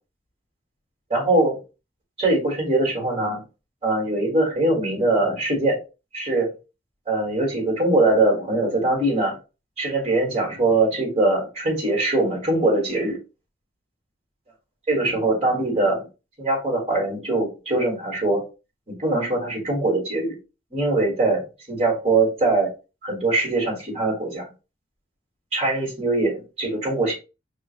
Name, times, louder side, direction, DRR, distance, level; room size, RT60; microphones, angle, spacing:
voice 1, 1.1-1.6 2.2-3.4 3.8-5.8 6.1-6.5 7.1-9.4 9.8-13.2 14.9-16.1 16.4-18.4 18.9-20.3 20.7-21.4 21.7-22.7 23.0-24.4 25.5-27.1, right 2 dB, 35° right, 1.6 m, -22 dB
5.7 x 2.5 x 2.5 m
head